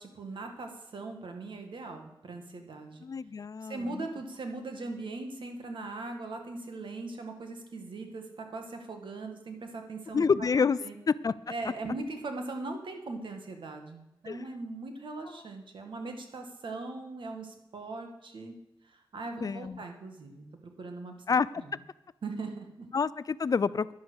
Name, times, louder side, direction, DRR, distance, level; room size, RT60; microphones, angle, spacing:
voice 1, 0.0-3.0 3.6-10.2 10.8-10.9 11.5-18.5 18.9-21.1 21.6-21.8 22.2-22.9, right 3 dB, 80° right, 4 dB, 2.0 m, -40 dB
voice 2, 3.0-4.1 10.1-10.8 11.1-11.3 14.3-14.4 19.4-19.8 21.3-21.5 22.9-23.9, left 5 dB, 45° left, 18 dB, 0.4 m, -28 dB
11.0 x 11.0 x 6.4 m, 0.92 s
wide cardioid pair, 135°, 8 cm